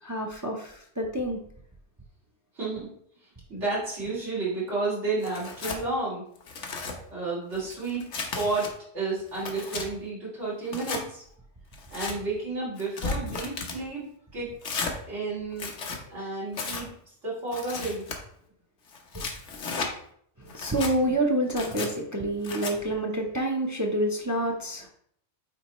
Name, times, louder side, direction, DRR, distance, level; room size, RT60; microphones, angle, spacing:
voice 1, 0.0-1.4 19.1-19.2 20.4-24.9, right 1 dB, 20° right, 1 dB, 0.7 m, -28 dB
voice 2, 2.5-2.9 3.5-6.2 7.1-11.2 11.9-14.0 14.3-14.8 15.1-15.7 16.1-16.9 17.2-18.0, right 3 dB, 80° right, -7 dB, 3.0 m, -31 dB
Tearing, 5.2-5.8 6.4-7.0 7.5-8.7 9.2-9.9 10.6-11.0 11.7-12.2 12.8-13.8 14.6-15.0 15.5-16.0 16.5-16.8 17.5-18.2 18.9-19.9 20.5-20.9 21.5-21.9 22.4-22.7, left 4 dB, 80° left, 1.3 m, -34 dB
8.9 x 4.1 x 3.0 m, 0.66 s
omnidirectional pair, 1.2 m